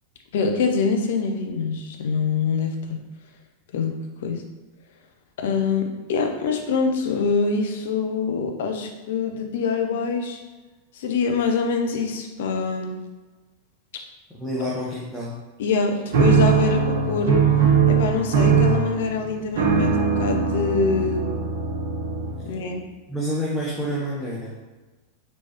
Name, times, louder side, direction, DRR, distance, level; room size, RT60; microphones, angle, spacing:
voice 1, 0.3-3.0 3.7-3.9 4.2-4.4 5.4-10.4 10.9-12.9 15.6-17.4 17.9-21.3 22.5-22.8, left 5 dB, 55° left, 4 dB, 0.6 m, -24 dB
voice 2, 14.3-15.4 23.1-24.6, equal, 5° left, -6 dB, 0.8 m, -28 dB
sound 1, 16.1-22.6, right 6 dB, 55° right, 0.7 m, -20 dB
4.3 x 3.1 x 2.9 m, 1.2 s
figure-of-eight pair, 90°, 0 cm